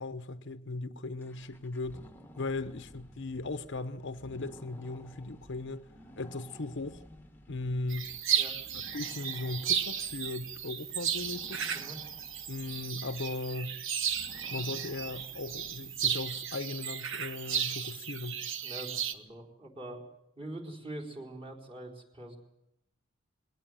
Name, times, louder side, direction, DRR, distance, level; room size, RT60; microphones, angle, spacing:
voice 1, 0.0-2.1 2.4-5.9 6.2-7.0 7.5-8.1 8.9-11.6 12.5-13.8 14.5-18.4, left 2 dB, 60° left, 0.9 m, -38 dB
sound 1, 1.2-16.6, left 1 dB, 10° left, 1.3 m, -55 dB
sound 2, 7.9-19.1, right 8 dB, 65° right, 1.2 m, -34 dB
voice 2, 18.6-20.0 20.4-22.4, right 1 dB, 25° right, 4.2 m, -43 dB
21.5 x 18.0 x 9.1 m
head